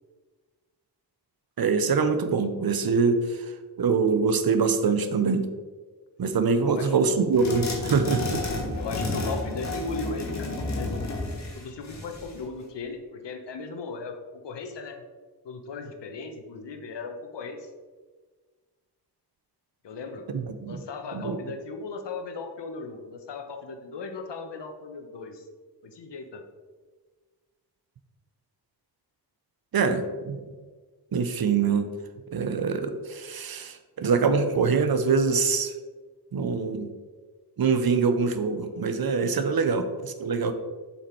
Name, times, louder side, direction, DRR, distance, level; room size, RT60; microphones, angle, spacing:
voice 1, 1.6-3.5 3.8-5.5 6.2-8.4 20.3-20.8 21.1-21.4 29.7-30.4 31.1-31.9 32.3-35.7 36.3-36.9 37.6-40.5, right 5 dB, 60° right, 9 dB, 0.8 m, -24 dB
voice 2, 6.7-7.0 8.7-11.0 11.5-15.0 15.4-17.7 19.8-20.3 20.6-25.5 25.8-26.4, left 4 dB, 85° left, 5 dB, 1.1 m, -37 dB
sound 1, 7.3-12.4, left 2 dB, 40° left, 1.4 m, -31 dB
7.1 x 5.7 x 4.5 m, 1.4 s
wide cardioid pair, 155°, 41 cm